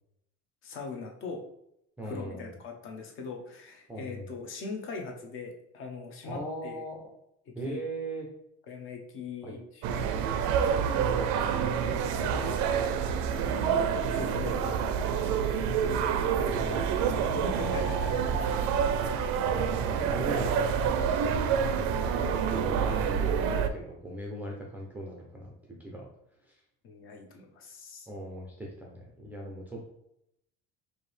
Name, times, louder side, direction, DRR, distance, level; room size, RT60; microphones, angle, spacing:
voice 1, 0.6-1.4 2.0-6.8 7.6-7.8 8.7-10.3 11.1-11.2 11.9-12.6 13.7-15.7 16.4-16.8 17.3-18.1 26.8-28.1, left 4 dB, 45° left, 2 dB, 0.7 m, -41 dB
voice 2, 2.0-2.5 3.9-4.4 6.2-7.0 7.6-8.3 9.4-9.6 11.1-11.9 16.6-17.3 17.6-18.2 19.5-26.1 26.4-26.6 28.1-29.9, right 1 dB, 5° right, -2 dB, 0.4 m, -39 dB
sound 1, 9.8-23.7, right 7 dB, 80° right, 0.5 m, -27 dB
4.7 x 2.7 x 3.2 m, 0.79 s
cardioid pair, 175°, 29 cm